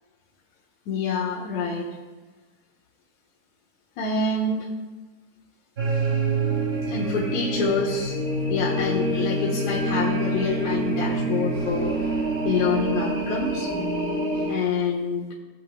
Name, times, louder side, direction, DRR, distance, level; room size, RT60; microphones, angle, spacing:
voice 1, 0.9-1.9 4.0-4.7 6.9-8.1 8.5-13.7 14.5-15.3, left 4 dB, 70° left, -6 dB, 2.4 m, -26 dB
sound 1, 5.8-14.6, right 2 dB, 30° right, 2.1 m, -26 dB
18.5 x 8.1 x 2.2 m, 1.3 s
omnidirectional pair, 3.5 m